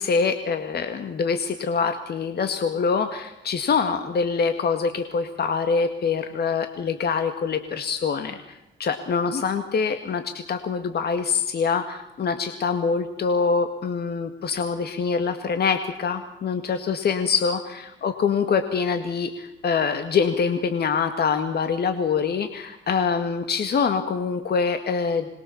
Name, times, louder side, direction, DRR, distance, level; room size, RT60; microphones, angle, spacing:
voice 1, 0.0-25.3, left 5 dB, 55° left, 8 dB, 2.1 m, -25 dB
26.5 x 22.0 x 7.2 m, 0.88 s
cardioid pair, 90°, 20 cm